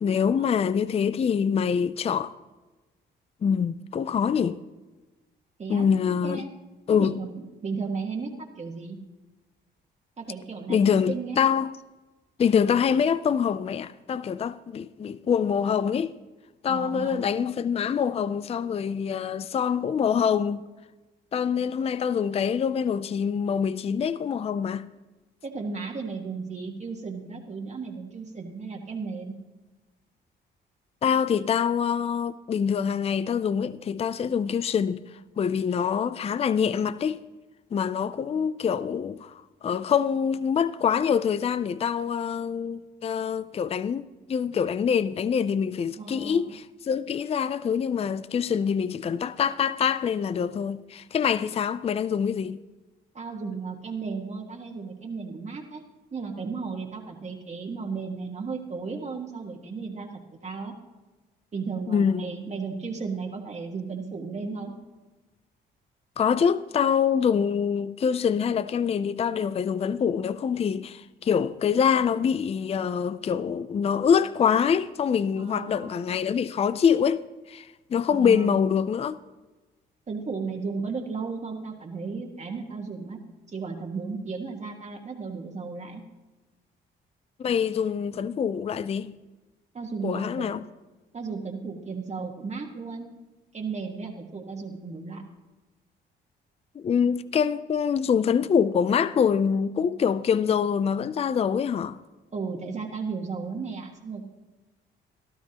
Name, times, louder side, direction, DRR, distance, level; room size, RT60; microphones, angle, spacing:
voice 1, 0.0-2.3 3.4-4.6 5.7-6.4 6.9-7.2 10.7-11.7 12.4-16.2 16.6-20.6 21.3-24.9 31.0-35.0 35.4-37.2 37.7-44.0 44.3-52.6 61.9-62.3 66.2-77.2 77.5-79.2 87.4-89.1 90.0-90.6 96.8-102.0, left 7 dB, 30° left, 0.4 m, -25 dB
voice 2, 6.9-9.0 10.2-11.4 12.7-12.8 16.7-17.2 25.4-29.3 37.9-38.4 46.0-46.6 53.1-55.8 56.1-60.1 60.4-60.7 61.5-64.7 75.4-76.0 78.1-78.6 80.1-83.2 83.5-86.0 89.7-90.5 91.1-93.1 93.5-95.2 102.3-104.3, right 4 dB, 35° right, 1.5 m, -34 dB
18.0 x 12.5 x 2.9 m
cardioid pair, 90°, 20 cm